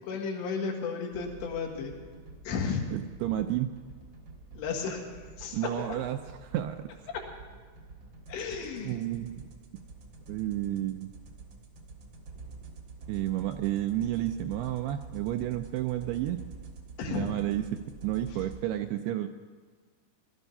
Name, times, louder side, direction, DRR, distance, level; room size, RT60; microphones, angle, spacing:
voice 1, 0.1-1.9 2.5-2.8 4.5-5.1 5.4-5.9 7.1-7.2 8.3-9.0 17.0-17.3, left 5 dB, 85° left, 0 dB, 4.0 m, -33 dB
Ogre Chase, 1.1-18.6, right 4 dB, 55° right, 1.4 m, -48 dB
voice 2, 2.9-3.8 5.5-6.9 8.8-9.5 10.3-11.1 13.1-16.4 17.1-19.3, right 13 dB, 85° right, 8 dB, 2.3 m, -31 dB
18.0 x 13.0 x 5.5 m, 1.5 s
omnidirectional pair, 5.0 m